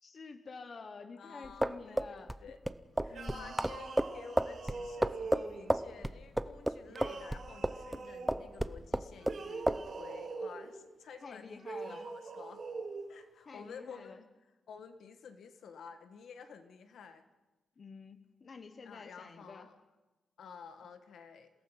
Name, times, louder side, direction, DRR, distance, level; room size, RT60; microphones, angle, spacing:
voice 1, 0.0-2.4 3.1-3.5 11.2-12.1 13.4-14.2 17.8-19.7, left 4 dB, 40° left, 8 dB, 1.2 m, -49 dB
voice 2, 1.2-2.6 3.0-12.6 13.1-14.2 14.7-17.2 18.8-19.7 20.4-21.5, left 6 dB, 75° left, 8 dB, 1.6 m, -51 dB
sound 1, 1.4-8.0 8.3-9.4 9.7-9.8, right 1 dB, 5° right, 0.6 m, -32 dB
sound 2, 3.1-5.8 6.9-8.4 9.2-10.7 11.6-13.1, right 4 dB, 55° right, 5.9 m, -43 dB
28.0 x 17.5 x 5.8 m, 1.2 s
wide cardioid pair, 150°, 0 cm